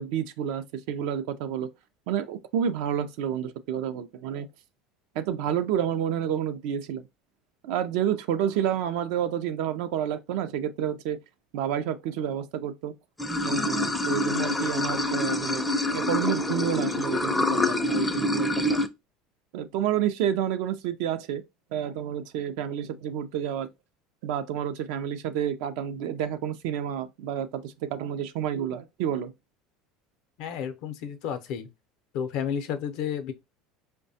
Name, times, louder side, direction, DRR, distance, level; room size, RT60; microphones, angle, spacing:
voice 1, 0.0-1.7 2.1-4.5 5.2-7.0 7.6-11.2 11.5-12.9 13.4-15.6 15.9-18.8 19.5-21.4 21.7-23.7 24.2-29.3, right 9 dB, 75° right, 0.4 m, -29 dB
Water / Sink (filling or washing), 13.2-18.9, left 1 dB, 10° left, 0.4 m, -26 dB
voice 2, 30.4-31.7 32.1-33.3, left 8 dB, 65° left, 0.5 m, -31 dB
4.7 x 2.1 x 2.7 m
supercardioid pair, 105°, 0 cm